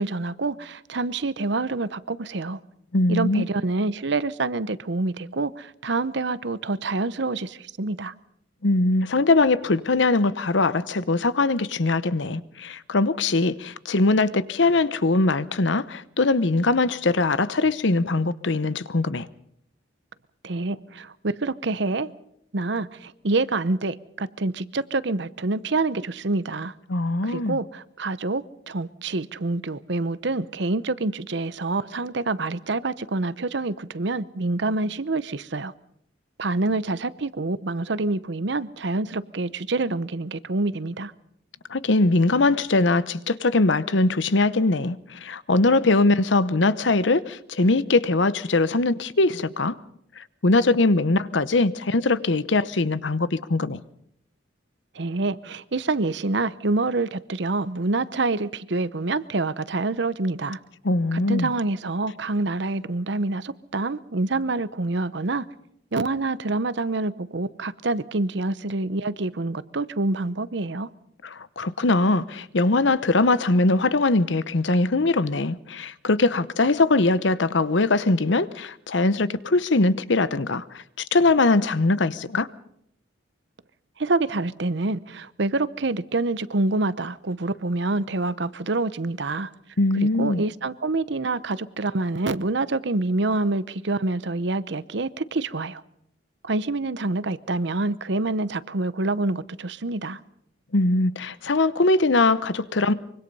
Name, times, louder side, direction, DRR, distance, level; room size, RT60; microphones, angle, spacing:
voice 1, 0.0-2.6 3.1-8.1 20.4-22.1 22.5-26.7 27.2-35.7 36.4-41.1 54.9-60.6 61.1-65.5 65.9-70.9 84.0-89.5 89.9-95.8 96.4-100.2, right 2 dB, 60° right, 0.8 m, -27 dB
voice 2, 2.9-3.4 8.6-19.3 26.9-27.6 41.7-49.8 50.2-53.8 60.8-61.5 71.2-82.5 89.8-90.4 100.7-102.9, left 2 dB, 65° left, 0.9 m, -21 dB
24.5 x 24.0 x 5.5 m
head